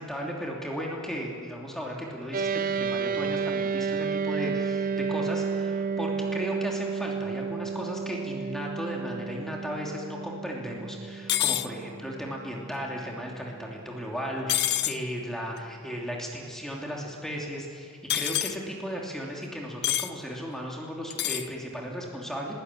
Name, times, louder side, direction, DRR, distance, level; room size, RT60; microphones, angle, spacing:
voice 1, 0.0-22.5, equal, ahead, -1 dB, 2.9 m, -36 dB
sound 1, 2.3-13.9, right 5 dB, 40° right, 0.6 m, -32 dB
sound 2, 11.3-11.7 14.5-15.0 18.1-18.5 19.8-20.1 21.1-21.5, left 12 dB, 50° left, 0.8 m, -26 dB
20.5 x 18.0 x 9.9 m, 2.2 s
head